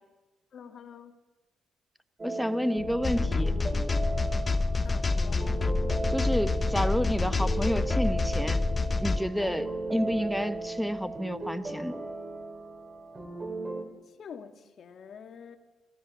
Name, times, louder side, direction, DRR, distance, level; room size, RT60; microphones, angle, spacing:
voice 1, 0.5-1.1 4.8-5.5 14.1-15.6, left 7 dB, 60° left, 1.8 m, -47 dB
voice 2, 2.2-3.6 6.1-8.6 9.0-12.0, equal, ahead, 1.2 m, -30 dB
sound 1, 2.2-13.8, right 2 dB, 25° right, 3.1 m, -36 dB
sound 2, 2.8-13.0, left 7 dB, 80° left, 1.4 m, -49 dB
sound 3, 3.0-9.2, left 3 dB, 25° left, 0.7 m, -27 dB
28.0 x 15.5 x 6.3 m
cardioid pair, 90°, 0 cm